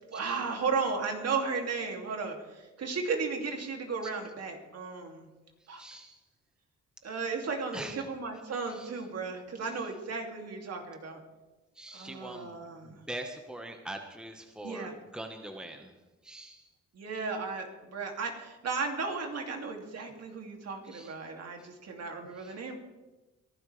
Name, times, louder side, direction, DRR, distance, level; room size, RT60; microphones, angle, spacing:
voice 1, 0.1-5.3 5.7-5.8 7.0-11.2 11.9-13.0 14.6-14.9 16.9-22.8, right 4 dB, 55° right, 2 dB, 2.7 m, -35 dB
voice 2, 5.8-6.2 7.7-8.0 8.7-8.9 9.6-9.7 11.7-15.9 16.2-16.7 20.9-21.1 21.6-21.7 22.4-22.5, right 1 dB, 5° right, 4 dB, 1.4 m, -43 dB
23.0 x 12.0 x 3.4 m, 1.1 s
cardioid pair, 90°, 30 cm